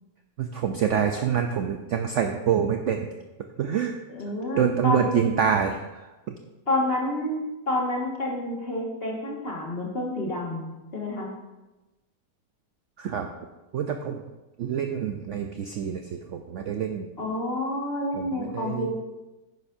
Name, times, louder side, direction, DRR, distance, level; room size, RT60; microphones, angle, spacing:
voice 1, 0.4-3.1 3.6-4.0 4.6-6.3 13.0-13.3 13.7-14.2 14.6-17.1 18.1-18.9, right 8 dB, 65° right, 5 dB, 0.7 m, -26 dB
voice 2, 4.1-5.3 6.7-11.3 17.2-18.9, left 1 dB, 35° left, -2 dB, 1.9 m, -29 dB
10.5 x 9.9 x 2.7 m, 1.1 s
omnidirectional pair, 1.8 m